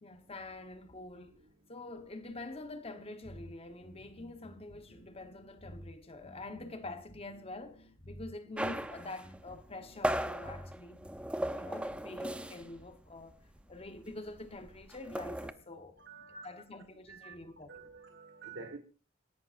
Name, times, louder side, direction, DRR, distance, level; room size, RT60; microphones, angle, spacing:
voice 1, 0.0-1.4 1.7-11.0 11.5-13.4 13.7-16.0 16.3-17.7, left 2 dB, 30° left, 1.0 m, -46 dB
sound 1, 3.2-12.8, equal, 50° left, 4.9 m, -53 dB
sound 2, 8.6-12.8 13.1-13.3 13.6-15.5, right 1 dB, 5° right, 0.6 m, -37 dB
voice 2, 16.0-16.6 17.1-17.4 17.7-18.8, right 4 dB, 65° right, 1.4 m, -48 dB
26.5 x 11.0 x 2.5 m
head